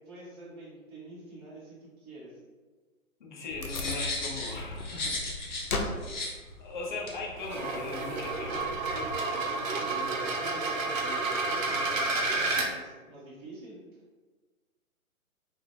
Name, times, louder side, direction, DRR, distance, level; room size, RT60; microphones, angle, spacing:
voice 1, 0.1-2.4 5.8-6.1 9.7-13.8, right 1 dB, 20° right, -11 dB, 0.5 m, -46 dB
voice 2, 3.2-5.2 6.6-8.7, left 3 dB, 35° left, -2 dB, 0.5 m, -38 dB
Wood, 3.5-9.2, left 2 dB, 85° left, 0.6 m, -39 dB
sound 1, 3.7-5.7 6.0-6.3 7.1-7.2, left 2 dB, 55° left, 0.9 m, -35 dB
sound 2, 7.4-12.7, right 3 dB, 65° right, 0.6 m, -30 dB
2.6 x 2.0 x 3.0 m, 1.3 s
hypercardioid pair, 145°, 43 cm